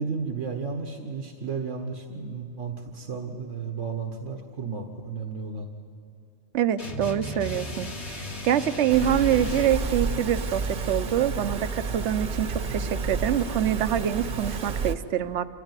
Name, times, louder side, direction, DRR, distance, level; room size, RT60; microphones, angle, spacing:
voice 1, 0.0-5.7, right 5 dB, 90° right, 3 dB, 1.8 m, -33 dB
voice 2, 6.5-15.5, right 10 dB, 70° right, 12 dB, 1.0 m, -25 dB
sound 1, 6.8-9.9, left 1 dB, 65° left, 2.4 m, -36 dB
sound 2, 8.9-15.0, right 4 dB, 50° right, 1.0 m, -30 dB
28.0 x 15.5 x 9.7 m, 2.4 s
omnidirectional pair, 1.2 m